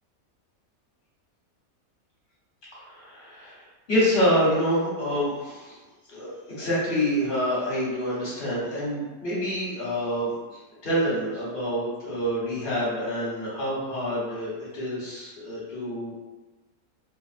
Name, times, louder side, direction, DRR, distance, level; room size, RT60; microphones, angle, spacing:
voice 1, 2.7-3.6 3.9-5.8 6.1-10.3 10.8-16.1, equal, 40° left, -7 dB, 1.0 m, -27 dB
2.5 x 2.0 x 2.4 m, 1.2 s
omnidirectional pair, 1.6 m